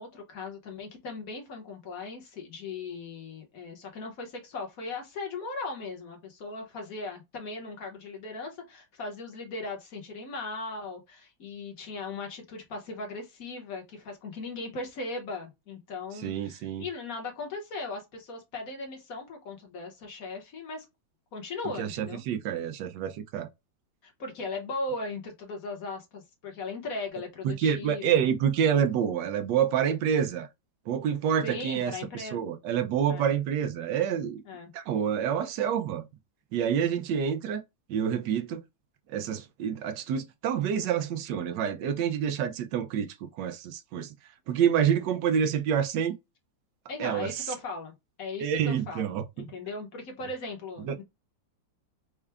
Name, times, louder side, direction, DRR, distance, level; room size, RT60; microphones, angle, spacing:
voice 1, 0.0-20.8 21.3-22.2 24.0-28.3 31.4-32.4 33.1-33.3 34.4-34.7 46.9-51.0, left 3 dB, 50° left, 1.5 m, -38 dB
voice 2, 16.2-16.8 21.8-23.5 27.4-30.5 30.9-34.4 34.7-36.1 36.5-37.6 37.9-38.6 39.1-43.1 43.4-44.1 44.5-46.2 47.0-47.5 48.4-49.2 50.8-50.9, right 8 dB, 70° right, 1.2 m, -27 dB
4.5 x 2.3 x 3.4 m
omnidirectional pair, 2.1 m